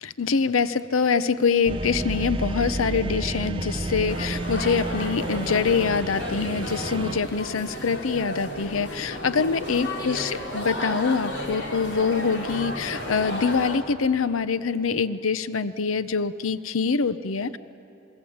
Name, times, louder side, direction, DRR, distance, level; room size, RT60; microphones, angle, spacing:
voice 1, 0.0-17.6, left 5 dB, 90° left, 14 dB, 0.7 m, -25 dB
sound 1, 1.6-7.2, right 2 dB, 25° right, 0.7 m, -31 dB
sound 2, 4.1-13.8, left 1 dB, 55° left, 3.2 m, -33 dB
27.5 x 22.0 x 8.7 m, 3.0 s
head